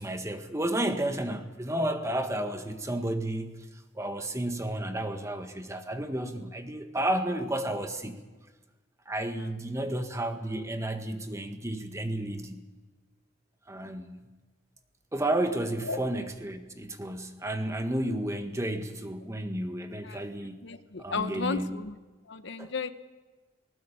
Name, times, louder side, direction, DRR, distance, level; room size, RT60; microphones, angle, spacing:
voice 1, 0.0-3.7 4.0-8.2 9.1-12.7 13.7-14.2 15.1-20.6 21.0-21.8 22.6-22.7, right 1 dB, 15° right, 6 dB, 1.6 m, -32 dB
voice 2, 20.6-21.9 22.3-22.9, left 4 dB, 60° left, 10 dB, 1.1 m, -34 dB
19.5 x 18.5 x 8.4 m, 1.2 s
head